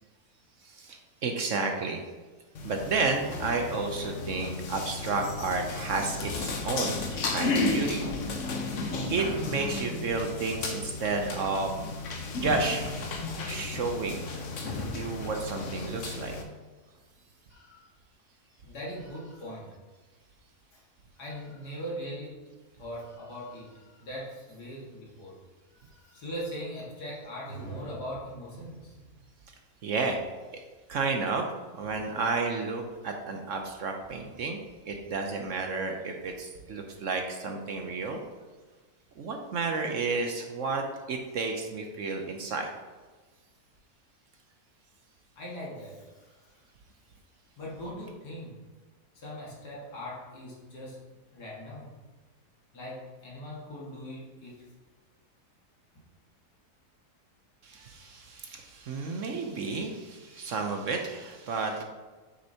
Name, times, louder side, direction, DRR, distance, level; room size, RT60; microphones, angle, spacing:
voice 1, 0.6-2.0 2.6-7.0 7.3-8.0 9.1-11.8 12.3-13.0 13.4-14.2 14.9-16.4 29.8-30.2 30.9-31.5 31.7-34.6 34.8-38.2 39.2-42.7 57.6-61.8, right 4 dB, 60° right, 3 dB, 0.9 m, -31 dB
sound 1, 2.5-16.4, left 3 dB, 55° left, 1.1 m, -33 dB
voice 2, 17.5-17.9 18.6-19.7 20.7-20.8 21.2-22.4 22.8-25.4 25.7-29.2 45.4-46.5 47.6-48.6 49.1-51.0 51.3-51.9 52.7-54.6, equal, 80° left, -5 dB, 2.4 m, -40 dB
8.0 x 6.5 x 2.8 m, 1.3 s
omnidirectional pair, 1.7 m